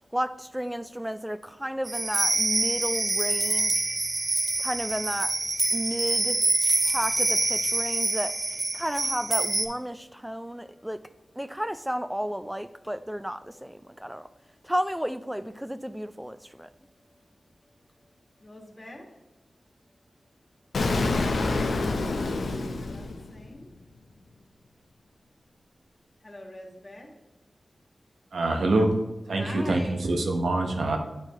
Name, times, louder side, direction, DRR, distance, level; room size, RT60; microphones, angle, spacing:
voice 1, 0.1-3.7 4.6-5.3 5.7-6.4 6.9-8.3 8.7-11.0 11.4-14.3 14.7-16.7, equal, 5° right, 0.4 m, -32 dB
sound 1, 1.8-9.6, right 2 dB, 40° right, 0.7 m, -26 dB
voice 2, 4.4-4.7 9.9-10.0 10.3-10.8 14.0-14.1 18.4-19.1 21.2-23.7 26.2-27.1 28.8-28.9 29.3-30.0, left 1 dB, 35° left, 1.6 m, -44 dB
Explosion, 20.7-23.7, left 3 dB, 85° left, 0.6 m, -27 dB
voice 3, 28.3-28.9 29.3-31.0, right 2 dB, 85° right, 0.9 m, -25 dB
9.5 x 4.5 x 2.9 m
cardioid pair, 60°, 0 cm